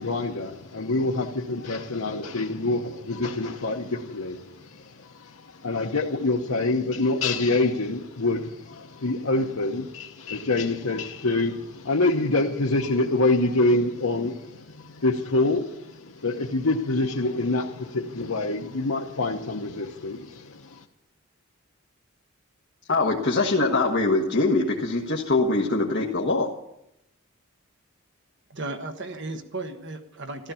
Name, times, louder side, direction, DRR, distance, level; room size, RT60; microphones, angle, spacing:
voice 1, 0.0-20.8, left 2 dB, 80° left, 1 dB, 1.0 m, -26 dB
voice 2, 22.9-26.5, left 2 dB, 50° left, -1 dB, 1.5 m, -23 dB
voice 3, 28.5-30.5, right 2 dB, 55° right, 6 dB, 1.4 m, -35 dB
14.0 x 13.5 x 7.0 m, 0.83 s
head